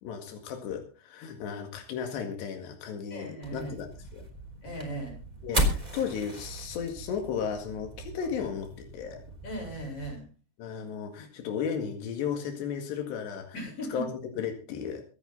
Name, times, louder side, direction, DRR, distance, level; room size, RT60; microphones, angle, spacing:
voice 1, 0.0-4.3 5.4-9.2 10.6-14.1 14.4-15.0, left 7 dB, 90° left, 5 dB, 4.2 m, -35 dB
voice 2, 3.1-3.7 4.6-5.2 9.4-10.3 13.5-14.1, right 1 dB, 35° left, 1 dB, 8.3 m, -37 dB
sound 1, 3.4-10.2, right 1 dB, 10° right, 3.1 m, -35 dB
24.5 x 9.2 x 3.9 m, 0.34 s
omnidirectional pair, 4.8 m